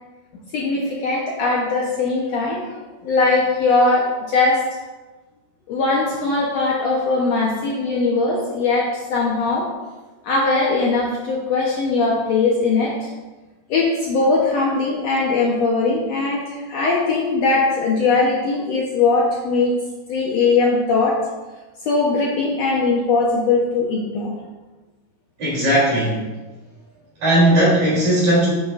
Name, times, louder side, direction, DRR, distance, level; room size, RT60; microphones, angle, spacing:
voice 1, 0.5-4.6 5.7-9.7 10.2-13.1 13.7-19.7 20.1-21.2 21.8-24.3, left 3 dB, 90° left, -3 dB, 1.4 m, -20 dB
voice 2, 25.4-26.3 27.2-28.5, right 1 dB, 50° right, -9 dB, 4.4 m, -17 dB
10.5 x 7.8 x 2.5 m, 1.2 s
omnidirectional pair, 4.4 m